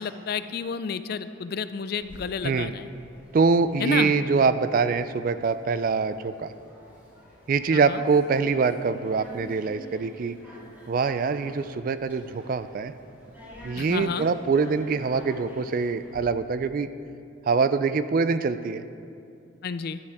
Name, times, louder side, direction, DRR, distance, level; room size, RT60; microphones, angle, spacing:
voice 1, 0.0-2.9 3.8-4.1 7.7-8.0 13.8-14.3 19.6-20.0, left 6 dB, 50° left, 13 dB, 0.3 m, -31 dB
sound 1, 2.0-16.2, equal, 10° right, 2.5 m, -48 dB
voice 2, 3.3-6.5 7.5-10.4 10.9-12.9 13.6-16.9 17.5-18.8, right 4 dB, 45° right, 12 dB, 0.3 m, -24 dB
11.5 x 11.0 x 3.5 m, 2.6 s
head